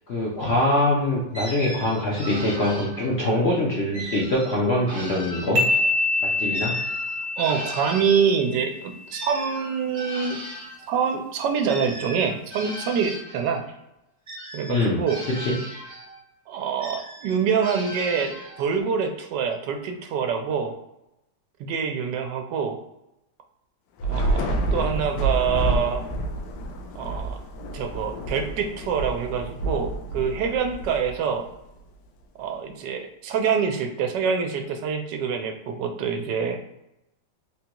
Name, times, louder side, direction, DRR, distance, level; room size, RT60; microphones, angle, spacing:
voice 1, 0.1-5.6 6.2-6.7 14.7-15.0 15.4-15.5, left 1 dB, 60° left, -4 dB, 0.7 m, -23 dB
sound 1, 1.3-3.4 3.9-6.0 6.5-10.9 11.7-13.6 14.3-16.2 16.8-18.8, equal, 30° right, 0.5 m, -38 dB
sound 2, 5.6-9.1, left 2 dB, 60° right, 1.1 m, -26 dB
voice 2, 7.4-10.4 10.9-13.6 14.5-15.2 16.5-18.3 18.6-20.7 21.6-22.8 24.1-26.0 26.9-27.4 27.7-31.4 32.4-36.6, right 6 dB, 90° right, 5 dB, 1.2 m, -25 dB
Thunder / Rain, 24.0-31.5, right 2 dB, 80° left, 1.2 m, -28 dB
3.7 x 2.2 x 2.9 m, 0.87 s
omnidirectional pair, 1.8 m